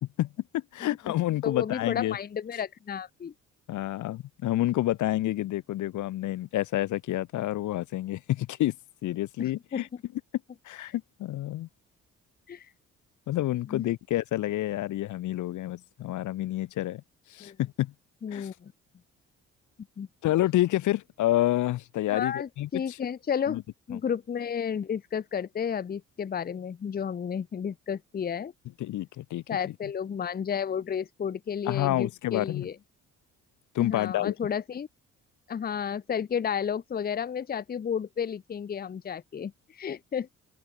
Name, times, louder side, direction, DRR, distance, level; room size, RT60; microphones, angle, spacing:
voice 1, 0.0-2.2 3.7-8.7 9.0-9.9 10.6-11.7 13.3-17.0 17.3-17.9 18.3-18.5 20.2-23.0 23.5-23.6 23.9-24.0 28.8-29.7 31.7-32.7 33.7-34.3, left 15 dB, 75° left, 1.0 m, -29 dB
voice 2, 1.4-3.3 9.4-9.8 12.5-12.7 13.7-13.9 17.4-17.6 18.2-18.7 20.0-20.1 22.1-23.6 23.9-28.5 29.5-32.8 33.8-34.9 35.5-40.3, left 7 dB, 30° left, 0.7 m, -32 dB
open air
cardioid pair, 90°, 30 cm